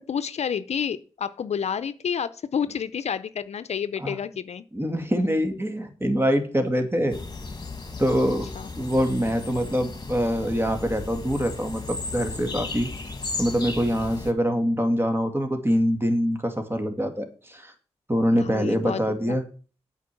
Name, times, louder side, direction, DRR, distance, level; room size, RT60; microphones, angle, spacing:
voice 1, 0.1-4.6 8.5-8.7 18.4-19.0 19.3-19.4, left 7 dB, 70° left, 14 dB, 0.6 m, -29 dB
voice 2, 4.7-7.2 8.0-8.5 8.8-12.9 13.4-17.7 18.1-19.4, equal, 20° right, 6 dB, 2.3 m, -24 dB
sound 1, 7.1-14.3, left 3 dB, 40° left, 1.8 m, -35 dB
8.4 x 5.3 x 7.7 m, 0.39 s
cardioid pair, 50°, 11 cm